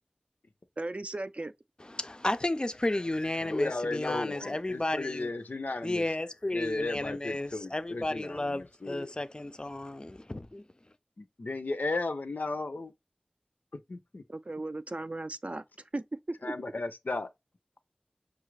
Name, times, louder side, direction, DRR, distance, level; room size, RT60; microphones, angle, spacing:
voice 1, 0.8-1.5 14.3-15.6 15.9-16.4, right 2 dB, 50° right, 0.3 m, -36 dB
voice 2, 1.8-5.3 5.8-10.6, left 1 dB, 30° left, 0.3 m, -33 dB
voice 3, 3.4-6.1 6.5-9.1 11.2-12.9 13.7-14.2 16.4-17.3, left 2 dB, 85° left, 0.5 m, -35 dB
5.5 x 2.4 x 3.1 m
wide cardioid pair, 45°, 3 cm